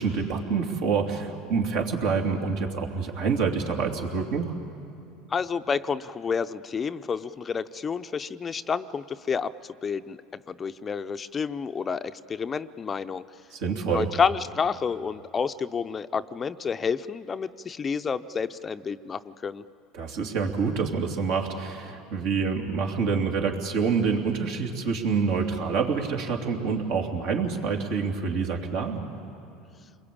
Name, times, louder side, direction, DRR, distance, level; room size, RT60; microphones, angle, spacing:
voice 1, 0.0-4.5 13.5-14.1 19.9-29.0, right 5 dB, 70° right, 1 dB, 3.1 m, -27 dB
voice 2, 5.3-13.2 13.9-19.6, left 6 dB, 25° left, 11 dB, 0.6 m, -29 dB
29.5 x 22.0 x 8.7 m, 2.6 s
supercardioid pair, 115°, 0 cm